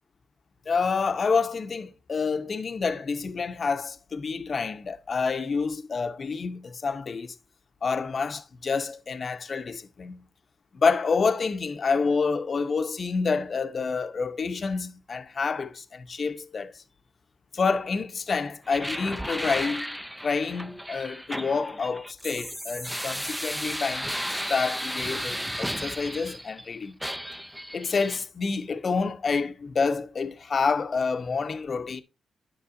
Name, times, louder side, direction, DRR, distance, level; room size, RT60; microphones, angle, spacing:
voice 1, 0.7-7.3 7.8-10.2 10.7-16.8 17.5-19.9 20.2-26.9 27.7-32.0, left 5 dB, 45° left, 0.7 m, -28 dB
sound 1, 18.7-26.7 27.0-28.2, equal, ahead, 0.4 m, -34 dB
9.4 x 6.8 x 2.6 m
cardioid pair, 80°, 0 cm